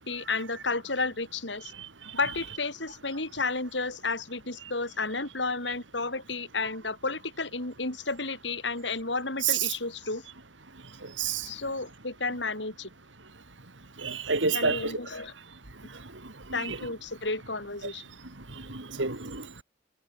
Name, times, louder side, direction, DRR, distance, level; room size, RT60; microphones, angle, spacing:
voice 1, 0.0-1.7 2.1-10.2 11.5-12.9 14.5-15.3 16.5-18.0, left 3 dB, 70° left, 7.1 m, -32 dB
voice 2, 14.0-14.9 16.5-16.8 18.7-19.4, right 5 dB, 85° right, 3.0 m, -28 dB
head